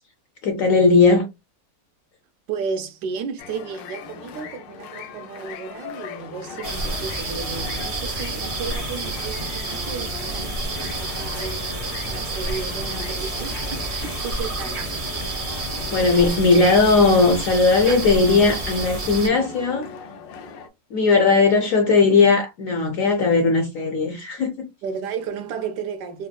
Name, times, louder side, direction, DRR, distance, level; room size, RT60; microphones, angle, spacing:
voice 1, 0.4-1.2 15.9-19.9 20.9-24.7, left 4 dB, 70° left, 0.8 m, -18 dB
voice 2, 2.5-15.1 24.8-26.3, right 6 dB, 75° right, 1.2 m, -33 dB
sound 1, 3.4-20.7, left 5 dB, 85° left, 1.3 m, -38 dB
sound 2, 6.6-19.3, right 2 dB, 50° right, 0.6 m, -29 dB
4.1 x 2.2 x 2.4 m
omnidirectional pair, 1.9 m